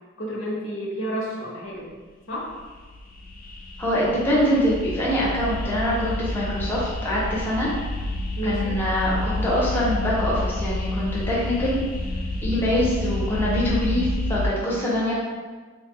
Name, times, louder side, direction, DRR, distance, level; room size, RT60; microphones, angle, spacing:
voice 1, 0.2-1.9 2.3-2.5 8.4-8.7, equal, 80° left, -3 dB, 0.7 m, -30 dB
sound 1, 2.5-14.5, left 2 dB, 45° left, 0.3 m, -29 dB
voice 2, 3.8-7.7 8.4-11.8 12.4-15.1, equal, 10° left, -6 dB, 0.6 m, -24 dB
3.1 x 2.0 x 3.5 m, 1.4 s
head